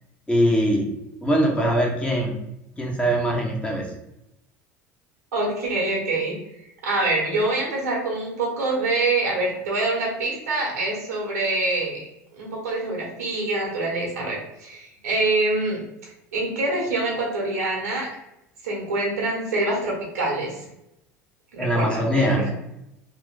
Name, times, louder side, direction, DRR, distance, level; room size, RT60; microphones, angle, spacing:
voice 1, 0.3-0.9 1.2-2.4 2.8-3.9 21.6-22.4, equal, 10° left, -1 dB, 1.1 m, -22 dB
voice 2, 5.3-6.3 6.8-12.0 12.4-15.8 16.3-18.1 18.6-20.6 21.5-22.5, right 2 dB, 85° right, -2 dB, 1.3 m, -25 dB
3.2 x 2.4 x 3.7 m, 0.84 s
hypercardioid pair, 75°, 8 cm